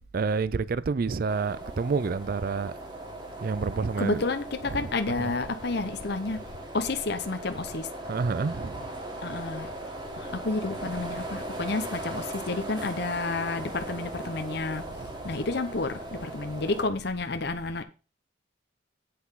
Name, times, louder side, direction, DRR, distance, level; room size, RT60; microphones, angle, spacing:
voice 1, 0.1-2.7 3.4-4.2 4.6-5.3 8.0-8.9 15.0-15.1, right 4 dB, 50° right, 0.4 m, -29 dB
sound 1, 1.3-16.9, right 1 dB, 25° right, 1.7 m, -39 dB
voice 2, 4.0-6.4 6.7-7.9 9.2-9.7 10.2-14.8 15.2-17.8, left 3 dB, 55° left, 0.8 m, -30 dB
8.5 x 5.8 x 5.6 m
head